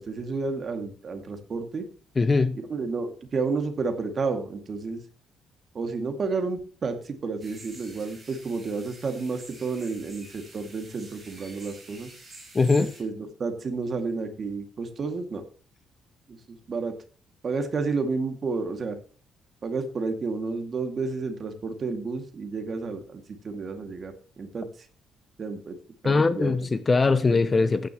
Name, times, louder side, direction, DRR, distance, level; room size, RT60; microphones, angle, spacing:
voice 1, 0.0-1.9 2.5-5.0 5.7-12.1 12.8-15.4 16.3-16.9 17.4-19.0 19.6-24.9 25.4-25.8 26.0-26.7 27.3-27.4, right 4 dB, 35° right, 2.3 m, -31 dB
voice 2, 2.2-2.6 12.5-12.9 26.0-27.9, left 3 dB, 20° left, 0.6 m, -21 dB
sound 1, 7.4-13.0, right 2 dB, 15° right, 5.7 m, -48 dB
15.0 x 10.0 x 3.1 m
cardioid pair, 160°, 0 cm